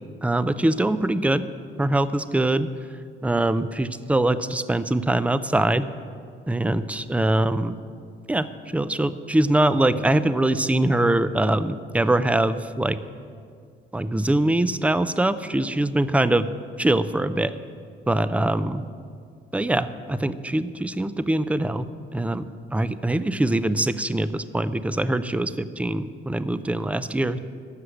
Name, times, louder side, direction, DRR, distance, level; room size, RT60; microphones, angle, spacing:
voice 1, 0.2-1.4 1.8-2.7 3.2-5.9 6.5-7.8 8.3-8.5 8.7-13.0 13.9-16.5 16.8-17.5 18.1-18.8 19.5-21.9 22.1-27.4, right 1 dB, 5° right, 13 dB, 0.5 m, -23 dB
14.0 x 6.4 x 9.6 m, 2.2 s
cardioid pair, 90°, 20 cm